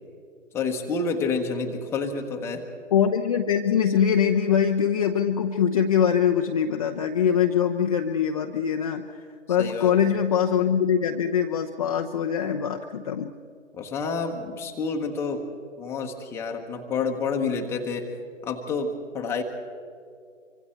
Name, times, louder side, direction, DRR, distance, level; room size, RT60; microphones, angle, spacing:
voice 1, 0.5-2.7 9.6-10.1 13.8-15.4 15.8-18.1 18.4-19.4, left 4 dB, 5° left, 2 dB, 1.0 m, -29 dB
voice 2, 2.9-9.0 9.5-13.3, left 8 dB, 30° left, 4 dB, 0.6 m, -23 dB
25.5 x 24.5 x 4.5 m, 2.3 s
figure-of-eight pair, 140°, 38 cm